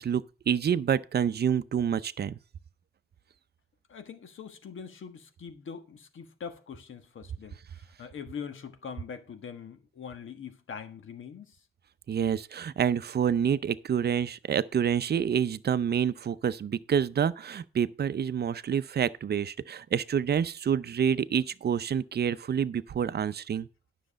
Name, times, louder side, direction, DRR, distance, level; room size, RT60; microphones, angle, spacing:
voice 1, 0.0-2.4 12.1-23.7, right 8 dB, 50° right, 0.6 m, -28 dB
voice 2, 3.9-7.6 8.0-11.6, left 6 dB, 70° left, 1.4 m, -42 dB
10.0 x 6.6 x 5.1 m
cardioid pair, 85°, 21 cm